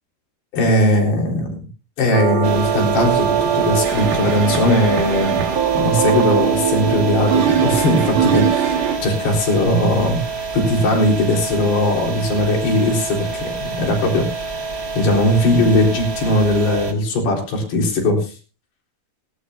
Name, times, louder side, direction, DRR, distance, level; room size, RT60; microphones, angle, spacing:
voice 1, 0.5-1.6 2.0-5.4 5.7-14.3 14.9-18.3, left 1 dB, 90° left, 0 dB, 6.1 m, -19 dB
sound 1, 2.1-9.0, right 8 dB, 55° right, 3.4 m, -20 dB
sound 2, 2.4-16.9, right 5 dB, 40° right, 1.2 m, -28 dB
18.0 x 17.0 x 2.8 m, 0.35 s
omnidirectional pair, 4.6 m